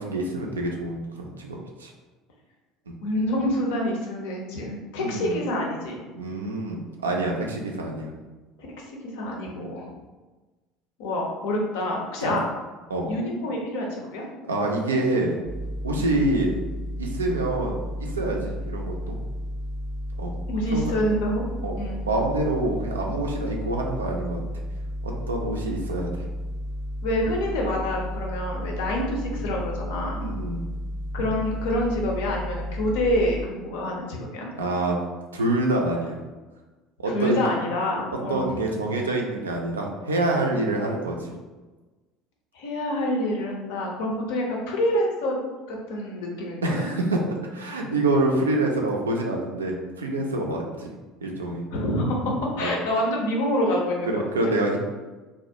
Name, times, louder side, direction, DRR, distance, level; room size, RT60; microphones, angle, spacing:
voice 1, 0.0-1.9 2.9-3.0 5.0-5.4 6.2-8.2 9.5-9.7 12.2-12.4 12.9-13.1 14.5-15.4 15.8-16.6 17.0-19.2 20.2-20.3 20.7-20.9 21.6-21.8 22.0-24.4 25.0-26.1 30.2-30.7 34.5-35.0 35.3-36.2 37.0-37.4 38.1-41.3 46.6-47.2 47.5-50.9 51.2-51.6 52.6-52.7 54.1-54.8, right 2 dB, 80° right, 1 dB, 0.3 m, -26 dB
voice 2, 3.0-6.0 8.6-8.7 9.1-9.9 11.0-12.4 13.1-14.2 16.0-16.1 20.5-21.4 21.8-22.0 27.0-30.2 31.1-34.5 37.1-38.5 42.5-45.4 45.7-46.9 51.7-54.5, left 1 dB, 65° left, -1 dB, 0.5 m, -27 dB
sound 1, 15.5-33.5, equal, 15° right, 0.5 m, -33 dB
2.3 x 2.0 x 2.7 m, 1.2 s
figure-of-eight pair, 65°, 0 cm